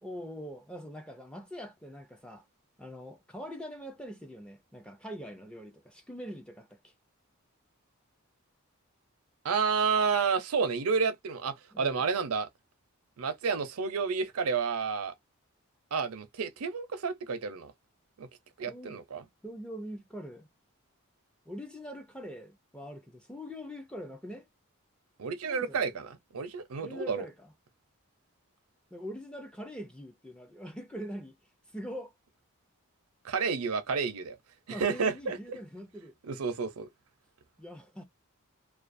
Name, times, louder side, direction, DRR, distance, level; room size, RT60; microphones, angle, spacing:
voice 1, 0.0-2.4 2.8-6.9 11.7-12.1 18.7-19.0 19.4-20.5 21.5-24.5 25.4-25.9 26.8-27.5 28.9-31.4 31.7-32.1 34.7-36.1 37.6-38.0, equal, 5° left, 0.4 m, -43 dB
voice 2, 9.4-12.5 13.2-15.1 15.9-17.7 18.2-18.3 18.6-19.2 25.2-27.2 33.2-34.4 34.7-35.6 36.3-36.9, right 5 dB, 85° right, 0.5 m, -30 dB
2.4 x 2.3 x 2.5 m
head